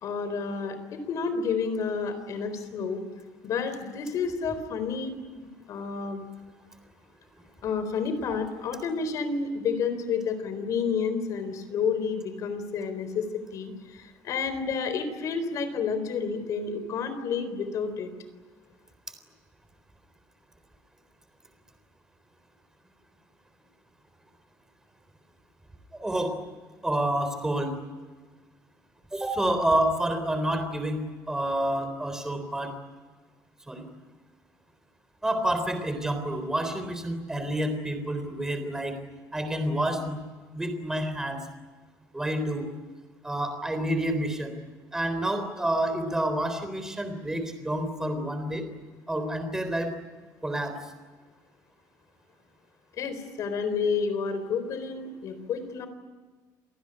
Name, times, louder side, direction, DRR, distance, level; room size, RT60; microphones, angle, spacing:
voice 1, 0.0-3.0 3.4-5.2 5.7-6.3 7.6-13.3 13.5-18.1 53.0-55.9, left 5 dB, 45° left, 11 dB, 4.1 m, -30 dB
voice 2, 25.9-26.4 26.8-27.8 29.1-31.0 31.3-32.7 33.7-33.8 35.2-39.0 39.3-40.2 40.5-41.4 42.1-42.7 43.2-44.5 44.9-48.6 49.1-49.9 50.4-50.8, right 1 dB, 5° right, 7 dB, 3.7 m, -28 dB
29.0 x 19.0 x 9.9 m, 1.4 s
cardioid pair, 170°, 8 cm